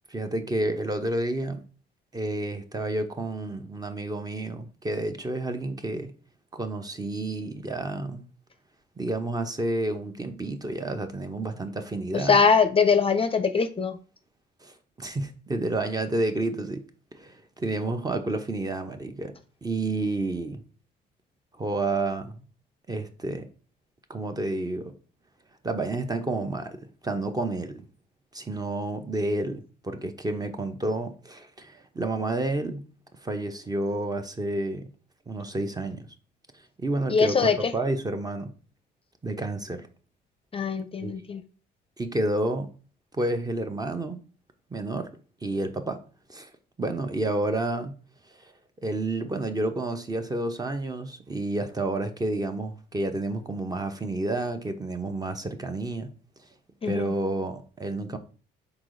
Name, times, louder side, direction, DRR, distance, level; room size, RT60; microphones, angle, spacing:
voice 1, 0.1-1.6 2.1-6.1 6.5-8.2 9.0-12.4 14.6-16.8 17.1-19.3 19.6-20.6 21.6-22.4 22.9-23.5 24.1-24.9 25.6-27.9 28.3-32.8 33.2-34.8 35.3-36.1 36.8-38.5 39.2-39.9 41.0-41.1 42.0-42.7 43.1-44.2 44.7-45.1 45.4-46.0 46.3-46.5 46.8-47.9 48.4-48.5 48.8-56.1 56.9-58.2, right 2 dB, 20° right, 0.7 m, -30 dB
voice 2, 12.1-14.0 37.1-37.7 40.5-41.4 56.8-57.1, left 5 dB, 30° left, 0.5 m, -22 dB
4.6 x 3.8 x 2.5 m
supercardioid pair, 70°, 19 cm